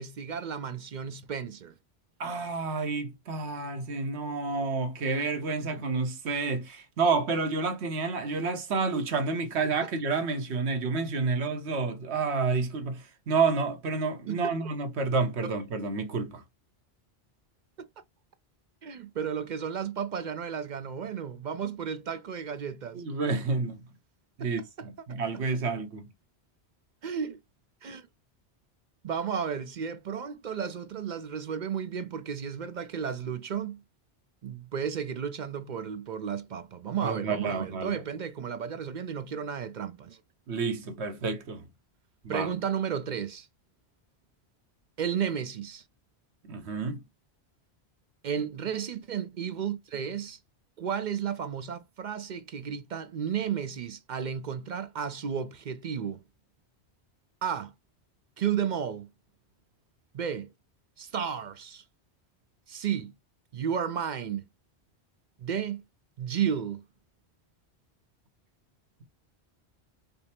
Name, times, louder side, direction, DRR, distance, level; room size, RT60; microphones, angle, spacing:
voice 1, 0.0-1.7 14.3-14.5 15.4-15.5 17.8-18.0 18.8-23.0 24.4-24.5 24.8-24.9 25.3-25.4 27.0-27.4 27.8-28.1 29.0-33.8 34.4-40.2 42.3-43.5 45.0-45.8 48.2-50.4 50.8-56.2 57.4-57.7 58.4-59.1 60.1-60.5 61.0-61.8 62.7-63.1 63.5-64.4 65.4-65.8 66.2-66.8, right 7 dB, 55° right, 0.6 m, -33 dB
voice 2, 2.2-16.4 22.9-23.8 24.4-26.1 37.0-38.0 40.5-41.6 42.2-42.5 46.5-47.0, right 4 dB, 75° right, 1.2 m, -29 dB
5.3 x 2.0 x 4.2 m
omnidirectional pair, 1.1 m